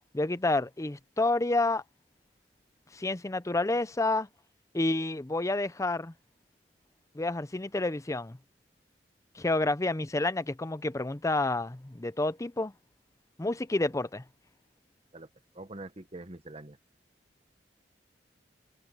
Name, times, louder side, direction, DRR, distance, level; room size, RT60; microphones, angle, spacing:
voice 1, 0.1-1.8 2.9-4.3 4.7-6.1 7.1-8.4 9.4-12.7 13.4-14.2, left 2 dB, 20° left, 0.6 m, -29 dB
voice 2, 15.5-16.8, right 2 dB, 35° right, 1.3 m, -44 dB
head